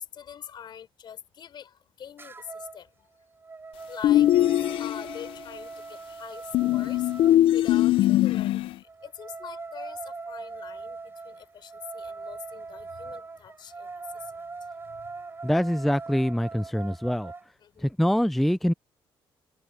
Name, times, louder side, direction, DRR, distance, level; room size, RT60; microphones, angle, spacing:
voice 1, 0.0-2.9 3.9-4.3 4.8-7.1 7.5-8.6 9.0-14.2 17.6-17.9, left 8 dB, 55° left, 5.0 m, -44 dB
sound 1, 2.2-2.8 3.2-7.4 8.9-17.5, right 4 dB, 25° right, 7.6 m, -41 dB
sound 2, 4.0-5.3 6.5-8.7, left 13 dB, 75° left, 0.6 m, -21 dB
voice 2, 15.4-17.3 17.8-18.7, equal, ahead, 0.4 m, -24 dB
open air
cardioid pair, 105°, 9 cm